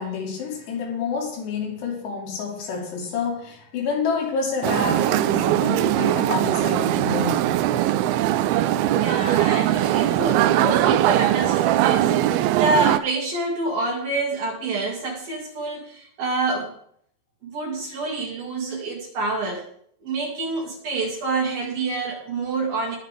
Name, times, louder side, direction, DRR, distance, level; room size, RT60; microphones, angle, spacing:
voice 1, 0.0-7.5, left 5 dB, 90° left, 0 dB, 4.8 m, -28 dB
sound 1, 4.6-13.0, right 13 dB, 80° right, 2.3 m, -20 dB
voice 2, 8.8-16.7 17.4-19.7 20.0-23.0, right 3 dB, 60° right, -3 dB, 3.9 m, -27 dB
21.0 x 8.7 x 3.5 m, 0.65 s
omnidirectional pair, 4.8 m